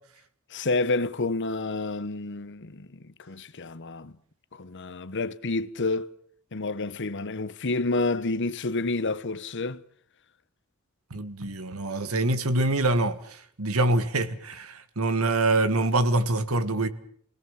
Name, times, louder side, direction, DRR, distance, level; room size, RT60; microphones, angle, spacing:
voice 1, 0.5-4.2 4.5-6.1 6.5-9.8, left 3 dB, 55° left, 1.0 m, -29 dB
voice 2, 11.1-16.9, right 2 dB, 80° right, 1.8 m, -25 dB
29.0 x 18.5 x 7.3 m
head